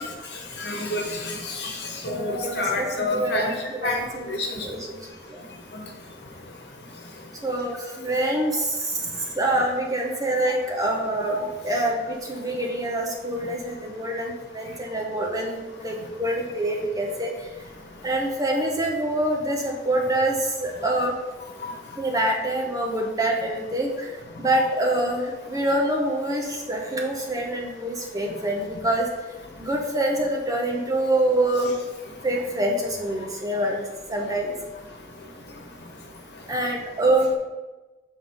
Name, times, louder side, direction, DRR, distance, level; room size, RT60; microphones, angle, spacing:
voice 1, 0.6-3.5 3.8-4.0 4.3-4.6 5.7-5.8 21.6-21.7 31.6-31.8, left 2 dB, 65° left, 1 dB, 1.2 m, -28 dB
voice 2, 2.1-3.5 3.8-5.0 5.3-5.4 7.4-9.0 9.3-17.5 18.0-21.2 22.0-24.1 24.4-29.1 29.6-31.7 32.2-34.5 36.5-37.4, right 1 dB, 20° right, 0 dB, 0.8 m, -26 dB
6.4 x 3.6 x 5.5 m, 1.2 s
head